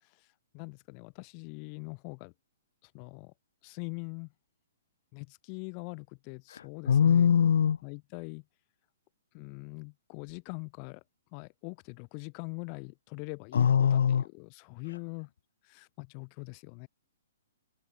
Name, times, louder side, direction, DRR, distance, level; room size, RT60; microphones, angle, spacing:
voice 1, 0.5-2.3 2.8-3.3 3.6-4.3 5.1-7.3 7.8-8.4 9.3-11.0 11.3-15.3 15.6-16.9, left 40 dB or more, 35° left, 3.8 m, -43 dB
voice 2, 6.9-7.8 13.5-14.2, left 8 dB, 75° left, 0.8 m, -22 dB
open air
hypercardioid pair, 140°, 0 cm